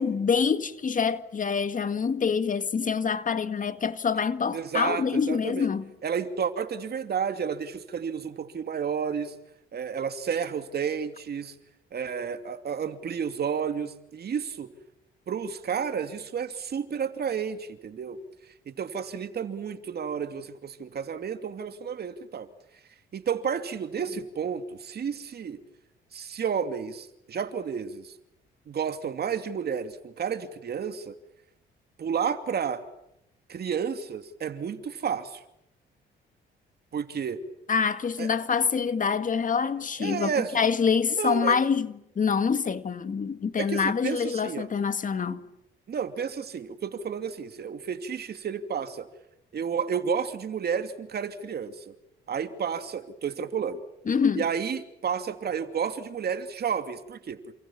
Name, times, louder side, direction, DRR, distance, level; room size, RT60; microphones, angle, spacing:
voice 1, 0.0-5.9 37.7-45.4 54.1-54.5, left 6 dB, 40° left, 1.8 m, -26 dB
voice 2, 4.5-5.7 6.0-9.3 9.7-11.5 11.9-14.7 15.3-18.2 18.7-22.5 23.1-25.6 26.1-28.1 28.7-31.2 32.0-32.8 33.5-35.4 36.9-37.4 38.2-38.3 40.0-40.6 41.1-41.6 43.6-44.7 45.9-49.1 49.5-51.9 52.3-53.8 54.3-57.5, right 7 dB, 55° right, 2.7 m, -31 dB
29.0 x 27.5 x 7.4 m
cardioid pair, 90°, 20 cm